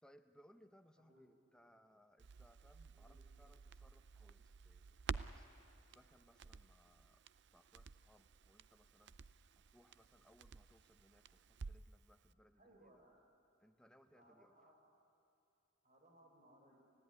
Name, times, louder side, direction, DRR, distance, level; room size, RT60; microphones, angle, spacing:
voice 1, 0.0-5.0 5.3-5.5 5.9-7.3 7.5-13.0 13.6-14.5, equal, 5° left, 8 dB, 0.9 m, -68 dB
voice 2, 1.0-1.4 2.9-3.2 12.5-13.2 14.1-15.0 15.8-16.8, right 1 dB, 35° right, 1 dB, 5.5 m, -67 dB
Crackle, 2.2-12.0 12.3-12.4, right 5 dB, 60° right, 0.6 m, -52 dB
29.5 x 16.0 x 9.7 m, 2.8 s
head